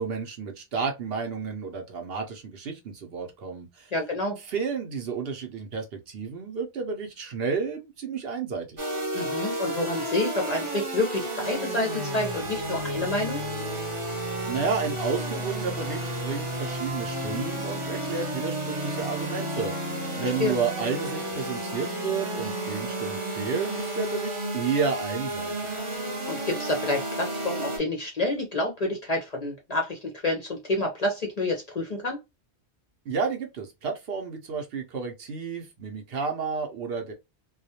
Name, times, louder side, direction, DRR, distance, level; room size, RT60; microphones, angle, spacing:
voice 1, 0.0-3.9 4.5-8.9 14.4-25.7 33.1-37.1, right 5 dB, 60° right, 0.8 m, -31 dB
voice 2, 3.9-4.4 9.1-13.4 20.2-20.5 26.3-32.2, left 2 dB, 45° left, 0.5 m, -28 dB
sound 1, 8.8-27.8, right 1 dB, 30° right, 0.8 m, -32 dB
2.3 x 2.2 x 2.7 m
omnidirectional pair, 1.2 m